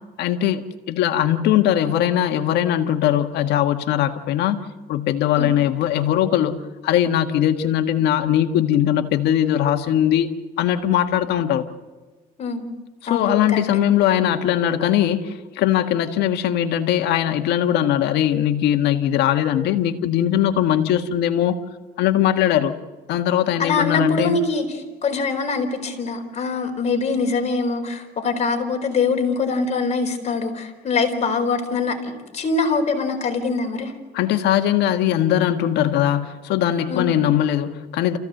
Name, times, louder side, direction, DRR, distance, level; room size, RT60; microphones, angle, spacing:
voice 1, 0.2-4.6 4.9-10.3 10.6-11.7 13.0-21.6 22.0-22.7 23.1-24.4 34.1-38.2, left 11 dB, 80° left, 7 dB, 1.7 m, -20 dB
voice 2, 13.1-13.6 23.6-33.9 36.9-37.1, left 4 dB, 40° left, 3 dB, 4.5 m, -23 dB
28.5 x 16.0 x 7.9 m, 1.3 s
cardioid pair, 110°, 17 cm